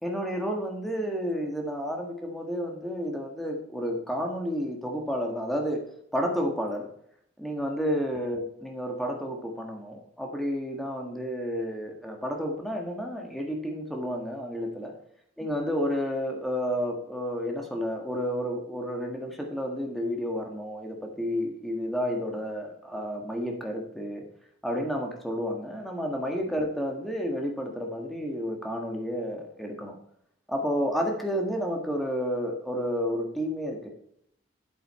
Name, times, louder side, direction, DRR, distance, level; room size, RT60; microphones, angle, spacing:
voice 1, 0.0-5.8 6.1-6.9 7.4-14.9 15.4-24.2 24.6-30.0 30.5-33.9, equal, ahead, 1 dB, 1.5 m, -31 dB
8.3 x 8.1 x 4.3 m, 0.69 s
head